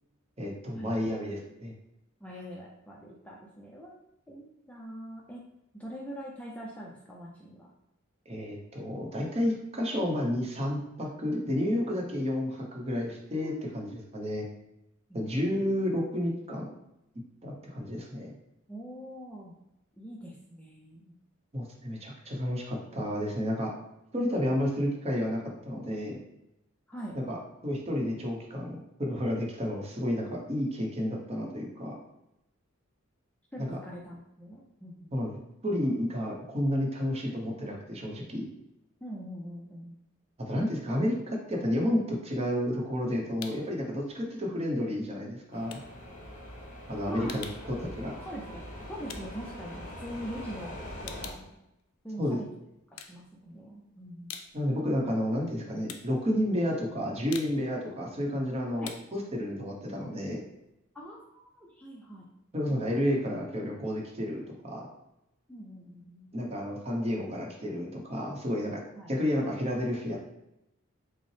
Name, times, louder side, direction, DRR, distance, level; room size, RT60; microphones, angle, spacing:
voice 1, 0.4-1.7 8.3-14.4 15.1-16.7 17.4-18.3 21.5-23.7 24.1-26.2 27.1-27.4 27.6-32.0 33.6-33.8 35.1-35.3 35.6-38.4 40.5-45.8 46.9-48.1 52.2-52.4 54.5-60.4 62.5-64.9 66.3-68.8 69.1-70.2, equal, 30° right, -1 dB, 0.7 m, -31 dB
voice 2, 2.2-5.4 5.7-7.7 13.4-14.0 15.1-15.8 18.7-19.5 20.0-21.2 26.9-27.2 33.5-35.2 39.0-40.0 47.1-47.4 48.2-51.5 52.0-52.5 52.9-54.3 58.8-58.9 60.9-62.3 65.5-66.3 69.0-69.1, equal, 5° left, -4 dB, 0.4 m, -43 dB
sound 1, 42.5-43.8 44.1-50.3 50.7-52.4 52.8-53.7 54.0-60.7, left 7 dB, 90° left, 0.4 m, -47 dB
sound 2, 45.5-51.3, equal, 40° left, 1.1 m, -43 dB
5.3 x 2.0 x 3.2 m, 0.87 s
head